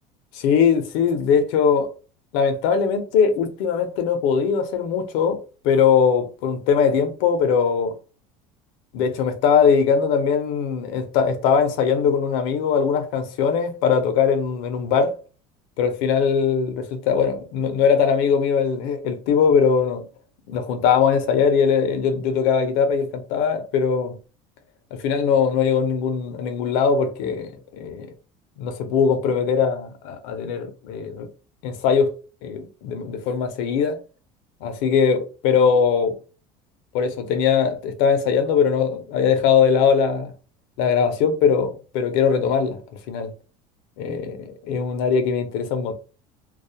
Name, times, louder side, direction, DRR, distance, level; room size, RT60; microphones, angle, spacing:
voice 1, 0.3-1.9 2.3-8.0 8.9-15.2 15.8-20.1 20.5-24.2 24.9-28.1 28.6-31.3 31.6-32.1 32.4-34.0 34.6-36.2 36.9-40.3 40.8-42.8 43.1-43.3 44.0-45.9, left 6 dB, 70° left, 0.6 m, -21 dB
2.3 x 2.0 x 2.7 m
cardioid pair, 160°, 15 cm